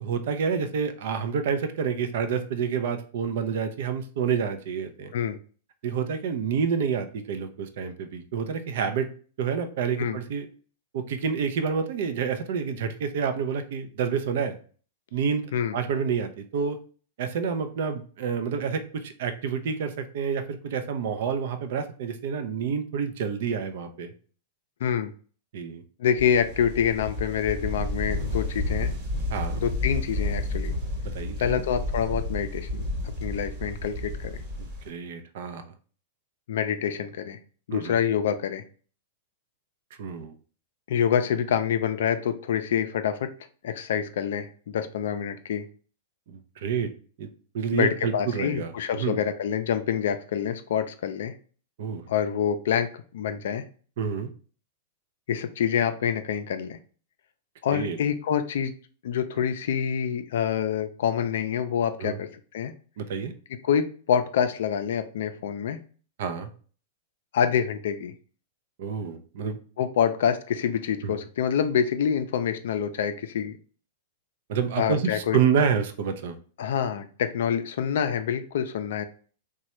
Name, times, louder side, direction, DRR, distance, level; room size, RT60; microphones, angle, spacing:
voice 1, 0.0-5.1 5.8-9.1 9.4-10.5 10.9-14.6 15.1-16.8 17.2-24.1 25.5-25.8 29.3-29.6 31.0-31.6 34.9-35.7 37.7-38.0 40.0-40.3 46.3-46.9 47.2-47.3 47.5-49.2 51.8-52.0 54.0-54.3 57.7-58.0 62.0-62.2 63.0-63.3 66.2-66.5 68.8-69.6 71.0-71.1 74.5-76.4, right 6 dB, 65° right, 9 dB, 0.5 m, -28 dB
voice 2, 24.8-25.1 26.0-28.9 29.6-30.7 31.4-32.9 33.2-34.4 36.5-37.4 37.7-38.6 40.9-43.3 43.6-45.7 47.7-51.3 52.1-53.6 55.3-56.8 57.6-58.7 59.0-62.3 62.5-62.7 63.6-65.8 67.3-68.1 69.8-73.6 74.8-75.4 76.6-79.0, left 8 dB, 70° left, 9 dB, 0.4 m, -26 dB
sound 1, 26.2-34.9, left 2 dB, 40° right, 1.1 m, -31 dB
3.1 x 2.2 x 2.9 m, 0.41 s
hypercardioid pair, 115°, 0 cm